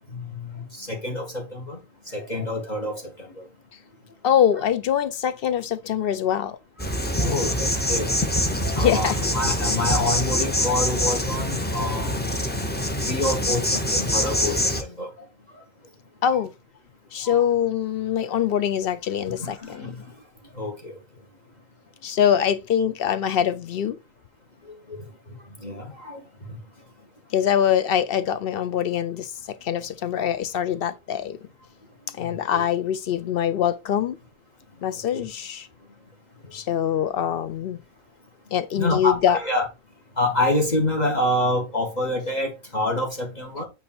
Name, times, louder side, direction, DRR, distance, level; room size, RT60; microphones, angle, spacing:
voice 1, 0.1-1.8 2.1-3.5 6.8-6.9 7.2-8.1 8.6-12.3 13.1-15.1 17.2-17.5 19.4-19.9 20.5-20.9 24.9-25.0 25.6-26.2 26.5-26.6 30.2-30.3 32.5-32.6 35.1-35.3 38.7-39.6 40.2-43.6, left 1 dB, 35° left, 1.4 m, -27 dB
voice 2, 4.2-6.6 8.8-9.2 16.2-16.5 17.1-19.9 22.0-24.0 27.3-31.4 32.1-34.2 34.8-35.7 36.5-37.8 38.5-39.4, left 9 dB, 65° left, 0.6 m, -23 dB
Insect, 6.8-14.8, left 1 dB, 10° left, 0.6 m, -25 dB
8.2 x 2.8 x 4.3 m
omnidirectional pair, 1.4 m